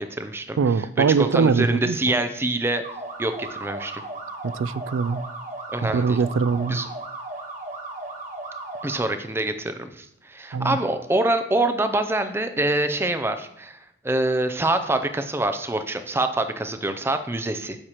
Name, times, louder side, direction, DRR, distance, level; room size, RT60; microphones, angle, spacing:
voice 1, 0.0-0.9 1.2-2.8 3.2-4.0 5.7-6.2 6.7-6.9 8.8-13.8 14.0-17.8, right 2 dB, 10° right, 0.4 m, -25 dB
voice 2, 0.6-2.0 4.4-5.2 5.8-6.8 10.5-10.8, right 5 dB, 90° right, 0.3 m, -22 dB
sound 1, 2.8-9.0, right 2 dB, 40° right, 1.2 m, -36 dB
8.5 x 6.5 x 3.0 m
head